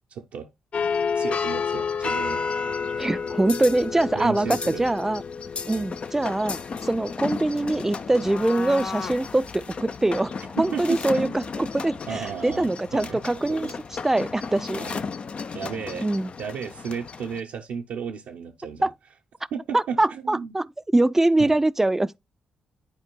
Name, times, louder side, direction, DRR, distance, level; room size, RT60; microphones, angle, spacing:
voice 1, 0.1-0.5 1.1-2.4 4.1-4.9 5.7-5.9 10.6-11.3 12.1-13.2 13.5-13.7 14.7-15.0 15.5-16.0 16.4-18.9 19.5-20.6 21.4-21.5, right 6 dB, 75° right, 0.6 m, -34 dB
sound 1, 0.7-17.4, left 5 dB, 45° left, 0.4 m, -32 dB
voice 2, 3.0-5.2 5.7-13.7 14.0-14.8 16.0-16.3 18.8-18.9 19.7-20.7 20.9-22.2, right 2 dB, 15° right, 0.4 m, -23 dB
10.5 x 4.4 x 2.2 m
hypercardioid pair, 45°, 3 cm